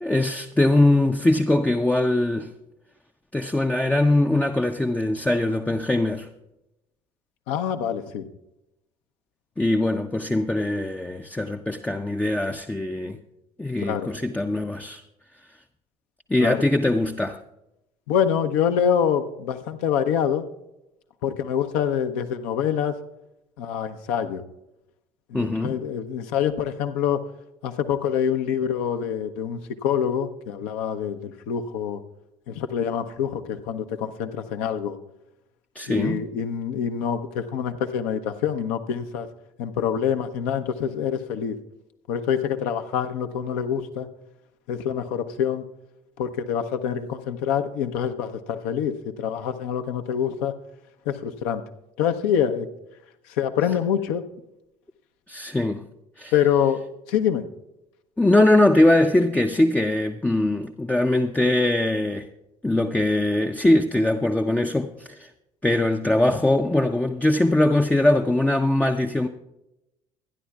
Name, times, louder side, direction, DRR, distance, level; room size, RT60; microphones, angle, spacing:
voice 1, 0.0-2.5 3.3-6.3 9.6-13.2 13.6-15.0 16.3-17.4 25.3-25.8 35.7-36.2 55.3-55.8 56.2-56.3 58.2-62.3 62.6-65.3 65.6-69.3, left 1 dB, 10° left, 0.5 m, -21 dB
voice 2, 7.5-8.3 13.8-14.1 16.4-16.6 18.1-20.5 21.2-22.9 23.6-24.4 25.3-27.3 27.6-32.0 32.5-35.0 35.9-39.3 39.6-41.6 42.1-44.1 44.7-45.6 46.2-50.5 51.1-51.6 52.0-52.7 53.4-54.2 56.3-56.8 57.1-57.5, left 8 dB, 65° left, 0.8 m, -25 dB
24.5 x 10.0 x 2.3 m
figure-of-eight pair, 55°, 18 cm